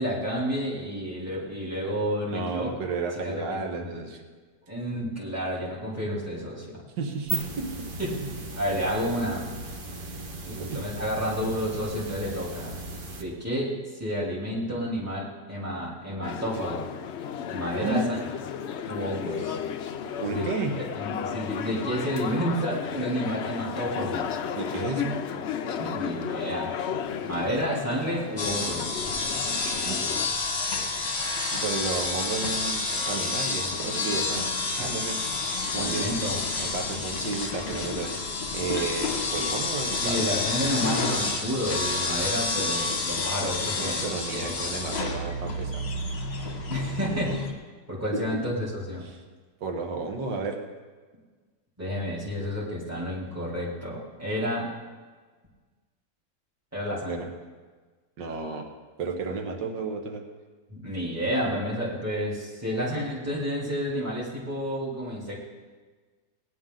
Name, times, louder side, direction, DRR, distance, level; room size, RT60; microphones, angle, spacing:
voice 1, 0.0-2.7 3.2-4.0 4.7-6.8 8.0-8.1 8.6-9.5 10.5-12.7 13.2-16.8 17.5-18.2 18.9-19.6 20.3-20.5 20.9-24.3 25.8-26.7 27.2-29.0 35.8-36.4 40.0-44.4 46.7-47.4 47.9-49.1 51.8-54.7 56.7-57.2 60.7-65.4, equal, 10° right, -6 dB, 2.9 m, -30 dB
voice 2, 2.3-4.2 7.0-7.9 8.2-8.3 10.6-10.8 17.8-18.1 20.2-20.8 24.6-25.2 29.9-30.0 31.5-34.5 34.8-35.2 35.7-36.2 36.6-38.1 38.5-40.5 43.8-45.8 48.1-48.4 49.0-49.2 49.6-50.6 57.1-57.3 58.2-58.7 59.0-60.2, right 4 dB, 85° right, 3 dB, 1.8 m, -32 dB
sound 1, 7.1-13.2, right 2 dB, 40° right, 0.9 m, -37 dB
sound 2, 16.2-30.3, left 7 dB, 75° left, 0.6 m, -33 dB
sound 3, 28.4-47.5, left 3 dB, 40° left, 1.4 m, -29 dB
18.0 x 10.0 x 3.8 m, 1.4 s
omnidirectional pair, 1.9 m